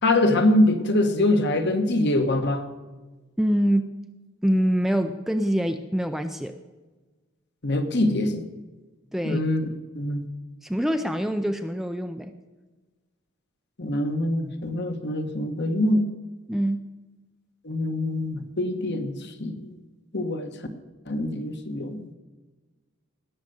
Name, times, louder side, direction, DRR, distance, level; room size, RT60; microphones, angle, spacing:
voice 1, 0.0-2.7 7.6-8.5 9.2-9.6 9.9-10.3 13.8-16.1 17.6-19.7 20.1-20.5 21.1-22.1, left 1 dB, 50° left, 7 dB, 1.3 m, -24 dB
voice 2, 3.4-3.9 4.4-6.6 9.1-9.4 10.6-12.3 16.5-16.9, equal, ahead, 7 dB, 0.4 m, -25 dB
18.5 x 6.5 x 7.9 m, 1.2 s
head